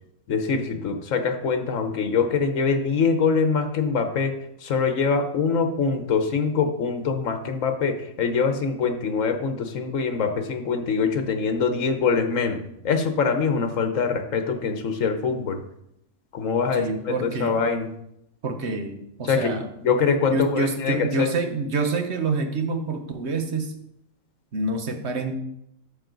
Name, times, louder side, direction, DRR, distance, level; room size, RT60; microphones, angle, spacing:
voice 1, 0.3-4.3 4.6-15.6 16.3-17.9 19.2-21.3, left 5 dB, 75° left, 7 dB, 1.4 m, -24 dB
voice 2, 16.7-17.6 18.4-19.7 20.3-23.7 24.5-25.4, right 3 dB, 55° right, 6 dB, 1.3 m, -27 dB
12.0 x 7.0 x 3.9 m, 0.78 s
omnidirectional pair, 1.4 m